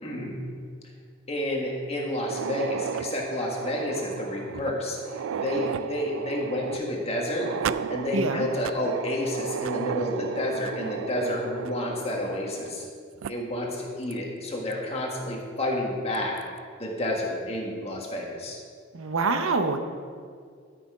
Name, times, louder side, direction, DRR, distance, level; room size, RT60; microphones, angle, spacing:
voice 1, 0.0-0.4 1.3-7.5 7.9-12.9 13.3-16.4 16.8-18.6, left 1 dB, 30° left, -1 dB, 1.6 m, -30 dB
sound 1, 2.1-12.9 13.2-13.3 14.1-14.2 14.7-14.8 16.1-16.4, right 7 dB, 70° right, 0.3 m, -34 dB
voice 2, 8.1-8.5 18.9-19.8, right 3 dB, 90° right, 8 dB, 0.7 m, -25 dB
12.0 x 6.1 x 4.9 m, 2.1 s
head